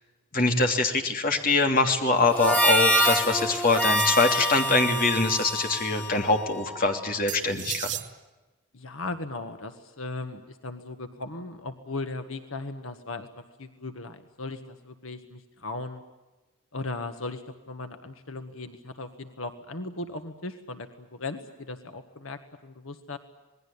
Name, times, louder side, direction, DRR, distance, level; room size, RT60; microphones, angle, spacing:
voice 1, 0.3-7.9, left 3 dB, 40° left, 3 dB, 3.0 m, -23 dB
Harmonica, 2.3-6.9, equal, 10° left, 3.0 m, -26 dB
sound 1, 3.5-4.5 7.3-8.1, right 12 dB, 55° right, 1.4 m, -36 dB
voice 2, 8.7-13.3 13.6-16.0 16.7-23.2, left 2 dB, 80° left, 7 dB, 1.7 m, -37 dB
27.5 x 20.0 x 8.6 m, 1.1 s
head